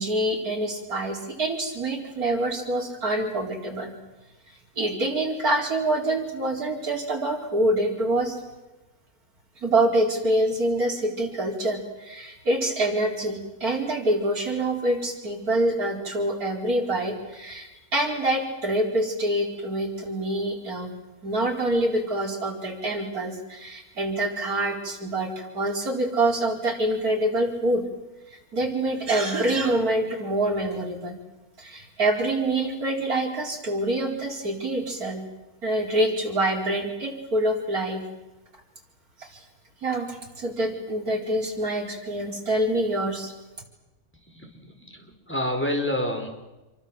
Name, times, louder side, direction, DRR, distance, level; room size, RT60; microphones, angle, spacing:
voice 1, 0.0-3.9 4.8-8.4 9.6-20.9 21.2-27.8 28.5-31.2 31.6-35.2 35.6-38.0 39.2-39.4 39.8-43.3, right 1 dB, 65° right, 1 dB, 5.0 m, -26 dB
voice 2, 44.2-46.3, left 1 dB, 5° left, 3 dB, 4.8 m, -29 dB
28.0 x 24.5 x 7.7 m, 1.0 s
omnidirectional pair, 1.6 m